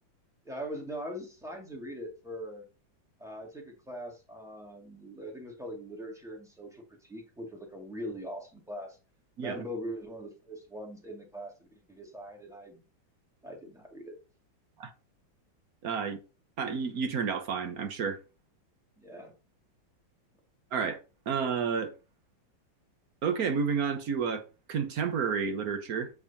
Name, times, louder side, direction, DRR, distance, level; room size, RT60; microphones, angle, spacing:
voice 1, 0.4-2.6 3.2-9.0 9.4-11.5 11.9-12.8 13.4-14.2 19.0-19.3, equal, ahead, 2.0 m, -41 dB
voice 2, 15.8-16.2 16.6-18.2 20.7-21.0 21.3-21.9 23.2-26.1, right 6 dB, 55° right, 1.4 m, -30 dB
8.0 x 4.8 x 4.2 m
omnidirectional pair, 2.1 m